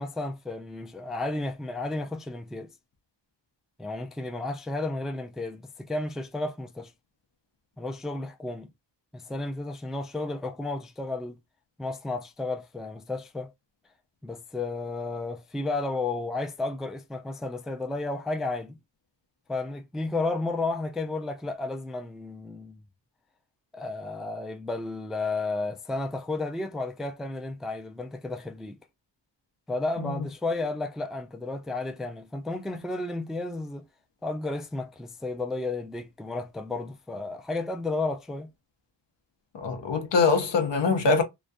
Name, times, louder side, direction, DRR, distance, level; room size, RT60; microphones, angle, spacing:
voice 1, 0.0-2.7 3.8-6.9 7.8-8.7 9.1-11.4 11.8-13.5 14.2-18.8 19.5-22.8 23.7-28.8 29.7-33.8 34.2-38.5, left 2 dB, ahead, 0.3 m, -32 dB
voice 2, 39.5-41.2, left 4 dB, 75° left, 0.7 m, -23 dB
2.2 x 2.2 x 2.5 m
cardioid pair, 55°, 43 cm